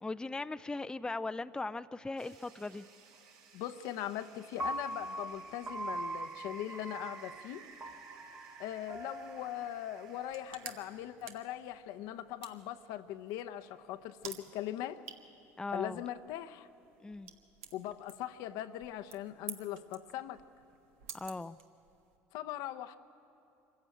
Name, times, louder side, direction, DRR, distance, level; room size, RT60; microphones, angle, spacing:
voice 1, 0.0-2.9 15.6-16.0 17.0-17.3 21.1-21.6, left 3 dB, 10° left, 13 dB, 0.4 m, -38 dB
sound 1, 2.2-11.1, right 5 dB, 70° right, 2.6 m, -56 dB
voice 2, 3.5-7.6 8.6-15.0 15.7-16.7 17.7-20.4 22.3-23.0, left 12 dB, 70° left, 9 dB, 0.8 m, -40 dB
Piano, 4.6-10.8, right 1 dB, 25° right, 1.0 m, -42 dB
sound 2, 10.1-22.2, right 7 dB, 85° right, 1.4 m, -52 dB
24.5 x 15.0 x 9.1 m, 2.8 s
supercardioid pair, 85°, 7 cm